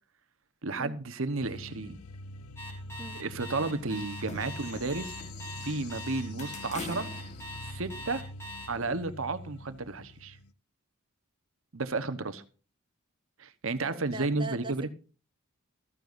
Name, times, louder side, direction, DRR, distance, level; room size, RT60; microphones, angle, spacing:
voice 1, 0.6-2.0 3.1-5.2 5.6-7.1 7.7-8.2 8.7-10.4 11.7-12.4 13.4-14.9, right 3 dB, 65° right, 1.1 m, -32 dB
sound 1, 1.4-10.5, left 1 dB, 90° left, 0.6 m, -44 dB
Alarm, 2.6-8.7, equal, 10° left, 3.7 m, -42 dB
sound 2, 4.0-6.0 6.4-8.3, left 3 dB, 35° left, 1.4 m, -45 dB
voice 2, 13.8-14.9, right 2 dB, 20° right, 1.0 m, -41 dB
14.5 x 14.0 x 2.6 m
head